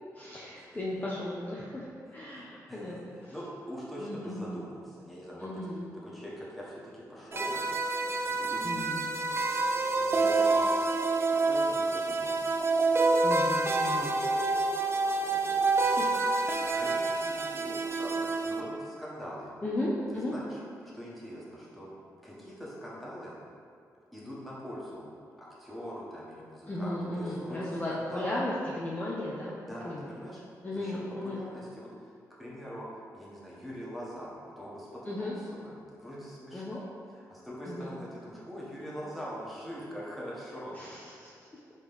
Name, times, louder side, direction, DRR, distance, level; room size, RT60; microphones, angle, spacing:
voice 1, 0.1-3.3 4.0-4.5 5.4-5.9 8.6-9.1 13.2-14.1 15.8-16.1 16.6-16.8 19.6-20.4 26.7-29.6 29.8-30.1 30.6-31.5 35.0-35.3 36.5-36.8 37.7-38.0 40.7-41.3, left 1 dB, 20° left, -6 dB, 0.6 m, -36 dB
voice 2, 2.7-5.7 6.0-7.6 8.2-9.3 9.9-10.7 11.0-12.5 15.3-16.0 16.7-19.5 20.1-20.6 20.9-21.9 22.2-23.4 24.1-25.1 25.4-28.3 29.7-30.4 30.7-31.9 32.4-36.9 37.1-40.7, equal, ahead, -7 dB, 1.2 m, -43 dB
sound 1, 7.3-18.6, right 3 dB, 35° right, 0.4 m, -27 dB
4.1 x 3.1 x 3.5 m, 2.3 s
cardioid pair, 70°, 7 cm